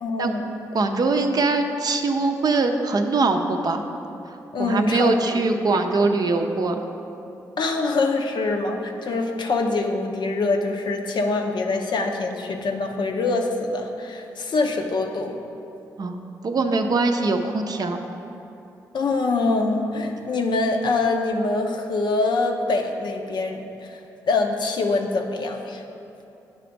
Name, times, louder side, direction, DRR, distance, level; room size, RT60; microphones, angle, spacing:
voice 1, 0.0-0.5 4.5-5.4 5.7-6.1 7.6-15.4 18.9-24.0 24.3-25.8, left 3 dB, 60° left, 3 dB, 0.6 m, -24 dB
voice 2, 0.7-3.8 4.6-6.8 16.0-16.2 16.4-18.0, right 3 dB, 50° right, 5 dB, 0.5 m, -22 dB
7.9 x 3.3 x 5.1 m, 2.8 s
hypercardioid pair, 40°, 9 cm